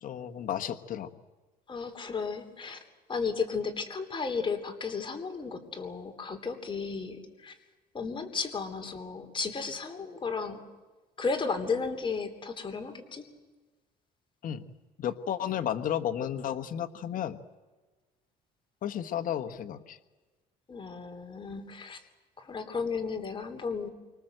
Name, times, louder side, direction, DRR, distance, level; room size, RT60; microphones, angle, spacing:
voice 1, 0.0-1.1 14.4-14.6 15.0-17.4 18.8-20.0, left 10 dB, 55° left, 8 dB, 1.3 m, -33 dB
voice 2, 1.7-2.8 3.1-7.5 7.9-10.6 11.2-13.3 20.7-22.0 22.4-23.9, left 5 dB, 30° left, 6 dB, 3.3 m, -34 dB
28.5 x 25.5 x 7.9 m, 1.2 s
cardioid pair, 110°, 17 cm